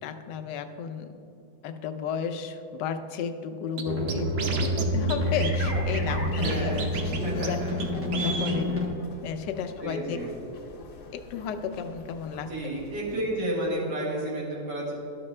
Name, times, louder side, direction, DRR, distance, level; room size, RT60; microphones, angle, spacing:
voice 1, 0.0-1.2 1.6-6.8 7.3-7.6 8.1-8.8 9.2-10.2 10.8-12.5, left 7 dB, 85° left, 8 dB, 1.2 m, -33 dB
sound 1, 3.8-8.9, left 1 dB, 15° right, 0.5 m, -28 dB
Scratching (performance technique), 3.8-3.9 4.1-4.8 5.1-5.2 5.4-6.5 6.8-7.2 7.4-7.5 7.8-7.9 8.1-8.6, right 4 dB, 55° right, 0.7 m, -31 dB
sound 2, 5.2-13.4, left 3 dB, 70° left, 1.3 m, -45 dB
voice 2, 6.3-6.9 7.2-7.7 9.8-10.3 12.3-14.9, right 1 dB, 85° right, -4 dB, 2.3 m, -31 dB
11.5 x 5.8 x 3.2 m, 2.7 s
omnidirectional pair, 1.8 m